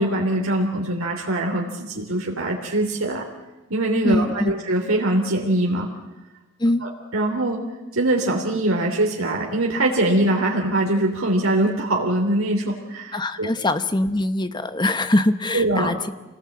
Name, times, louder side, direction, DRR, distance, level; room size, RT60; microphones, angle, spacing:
voice 1, 0.0-3.3 3.7-5.9 6.8-7.6 7.9-13.5 15.5-15.9, right 1 dB, 90° right, 0 dB, 3.2 m, -22 dB
voice 2, 4.0-4.5 6.6-6.8 13.1-16.1, left 1 dB, 20° left, 11 dB, 1.0 m, -22 dB
26.5 x 19.0 x 8.7 m, 1.1 s
head